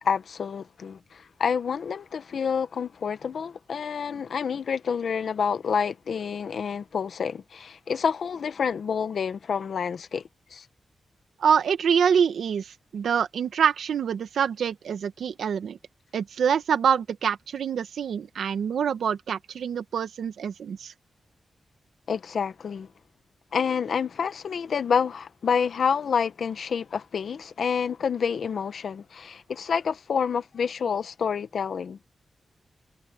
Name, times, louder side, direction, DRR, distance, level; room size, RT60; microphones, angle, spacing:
voice 1, 0.0-10.2 10.5-10.6 22.1-22.9 23.5-32.0, left 6 dB, 75° left, 1.5 m, -28 dB
voice 2, 11.4-15.8 16.1-20.9, right 7 dB, 85° right, 1.5 m, -25 dB
cardioid pair, 65°, 0 cm